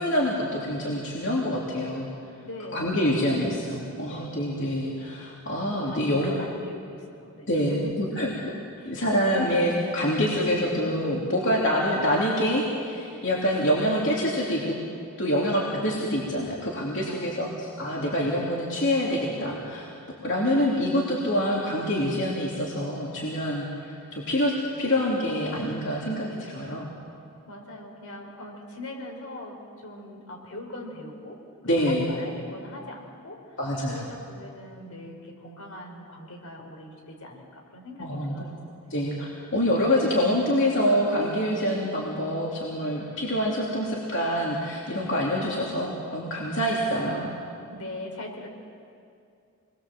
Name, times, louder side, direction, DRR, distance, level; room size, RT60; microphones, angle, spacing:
voice 1, 0.0-2.1 2.7-6.3 7.5-8.3 8.8-14.7 15.2-19.9 20.2-24.5 24.8-26.9 31.6-32.1 33.6-34.0 38.0-38.4 38.9-47.3, equal, 55° left, -4 dB, 3.2 m, -26 dB
voice 2, 2.4-3.4 3.7-4.5 5.6-9.0 17.1-17.6 27.4-38.6 47.7-48.5, left 1 dB, 75° left, 1 dB, 4.9 m, -42 dB
28.5 x 21.5 x 7.7 m, 2.4 s
head